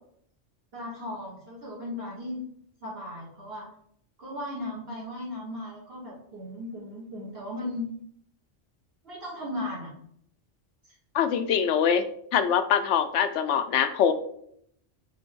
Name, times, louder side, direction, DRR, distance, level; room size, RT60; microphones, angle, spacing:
voice 1, 0.7-2.4 2.8-3.7 4.2-7.9 9.0-9.9, left 1 dB, 55° right, -6 dB, 1.5 m, -36 dB
voice 2, 11.1-12.0 12.3-14.1, left 8 dB, 80° left, 10 dB, 0.9 m, -23 dB
5.9 x 3.6 x 4.5 m, 0.69 s
omnidirectional pair, 1.2 m